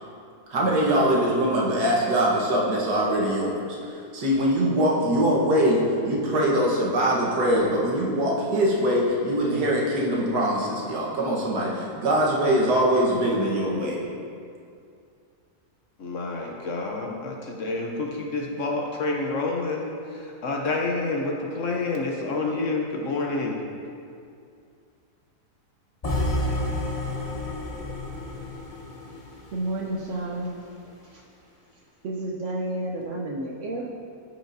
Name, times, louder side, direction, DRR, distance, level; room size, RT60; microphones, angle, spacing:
voice 1, 0.5-3.8 4.1-14.0, equal, 80° right, -4 dB, 1.8 m, -23 dB
voice 2, 16.0-23.6, left 3 dB, 60° left, 0 dB, 1.0 m, -28 dB
sound 1, 26.0-30.1, left 1 dB, 35° left, 0.7 m, -30 dB
voice 3, 29.5-30.7 31.0-31.2 32.0-33.9, right 1 dB, 60° right, -1 dB, 0.8 m, -31 dB
13.5 x 4.8 x 2.6 m, 2.4 s
omnidirectional pair, 1.7 m